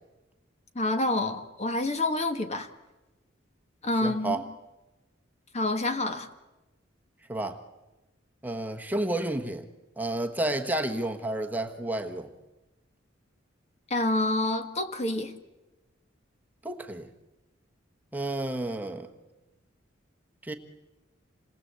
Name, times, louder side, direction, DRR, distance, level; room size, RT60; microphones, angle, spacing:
voice 1, 0.7-2.7 3.8-4.4 5.5-6.3 13.9-15.3, left 2 dB, 35° left, 8 dB, 1.6 m, -27 dB
voice 2, 4.0-4.5 7.3-7.6 8.4-9.7 10.0-12.3 16.6-17.1 18.1-19.1 20.4-20.5, right 1 dB, 10° right, 3 dB, 1.2 m, -31 dB
27.5 x 20.0 x 8.2 m, 1.1 s
head